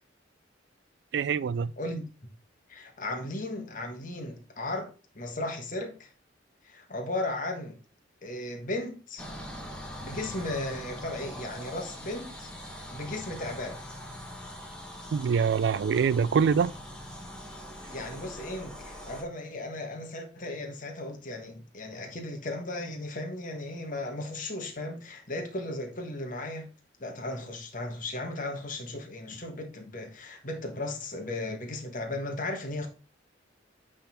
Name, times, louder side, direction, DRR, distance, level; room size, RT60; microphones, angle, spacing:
voice 1, 1.1-1.7 15.1-16.7, right 6 dB, 65° right, 0.3 m, -24 dB
voice 2, 2.7-6.1 6.6-7.8 8.2-9.3 10.0-13.8 17.9-26.7 27.0-32.9, left 2 dB, 45° left, 1.5 m, -36 dB
sound 1, 9.2-19.2, equal, 5° left, 1.3 m, -42 dB
8.7 x 3.9 x 4.3 m
head